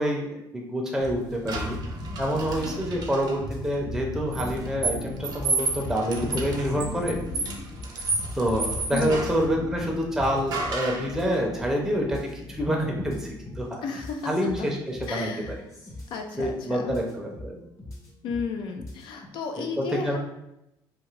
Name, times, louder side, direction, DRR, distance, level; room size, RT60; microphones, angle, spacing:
voice 1, 0.0-1.8 2.2-7.2 8.3-13.7 14.2-15.3 16.4-17.6 19.6-20.2, equal, 5° right, -1 dB, 0.5 m, -27 dB
sound 1, 1.0-19.3, left 2 dB, 35° left, 0.7 m, -42 dB
sound 2, 1.5-10.7, left 1 dB, 90° left, 1.1 m, -38 dB
sound 3, 1.5-3.3 4.3-9.5 10.5-11.1, right 3 dB, 55° right, 0.6 m, -31 dB
voice 2, 8.9-9.2 13.8-14.3 14.6-14.7 15.1-15.6 16.1-16.9 18.2-20.2, left 5 dB, 70° left, 4 dB, 0.4 m, -33 dB
2.5 x 2.4 x 3.1 m, 0.86 s
cardioid pair, 105°, 9 cm